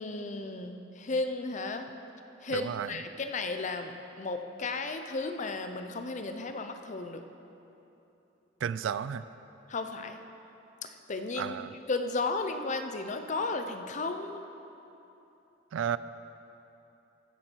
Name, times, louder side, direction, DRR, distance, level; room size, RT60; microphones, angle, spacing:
voice 1, 0.0-1.9 2.4-7.2 9.7-10.2 10.8-11.6 11.9-14.4, left 3 dB, 40° left, 7 dB, 0.6 m, -34 dB
voice 2, 2.5-3.0 8.6-9.2 11.4-11.7 15.7-16.0, right 8 dB, 90° right, 15 dB, 0.3 m, -32 dB
15.5 x 7.5 x 4.6 m, 3.0 s
head